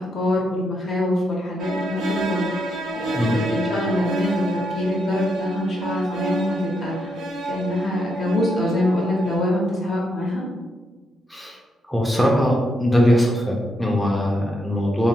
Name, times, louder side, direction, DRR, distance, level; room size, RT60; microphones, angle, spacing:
voice 1, 0.0-7.2 7.4-10.4, left 1 dB, 55° left, -3 dB, 0.8 m, -24 dB
sound 1, 1.6-9.4, right 2 dB, 80° right, 0.4 m, -29 dB
voice 2, 11.9-15.1, equal, ahead, -3 dB, 0.4 m, -20 dB
2.7 x 2.0 x 2.7 m, 1.3 s
cardioid pair, 90°, 0 cm